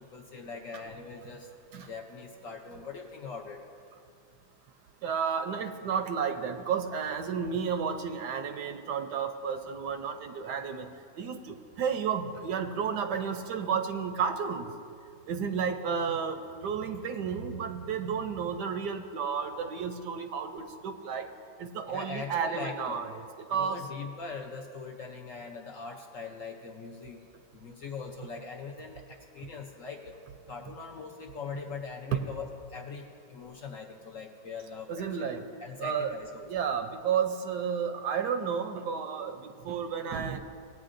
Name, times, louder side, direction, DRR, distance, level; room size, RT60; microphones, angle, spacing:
voice 1, 0.0-3.6 21.9-23.0 23.5-27.2 27.5-30.1 30.5-35.3 35.6-36.5, left 5 dB, 60° left, 1 dB, 0.8 m, -41 dB
voice 2, 5.0-10.9 11.2-14.7 15.3-16.4 16.6-21.3 21.6-23.2 23.5-23.8 34.9-35.4 35.8-36.2 36.5-40.4, right 6 dB, 70° right, 7 dB, 1.1 m, -32 dB
18.0 x 8.9 x 2.6 m, 2.3 s
omnidirectional pair, 2.1 m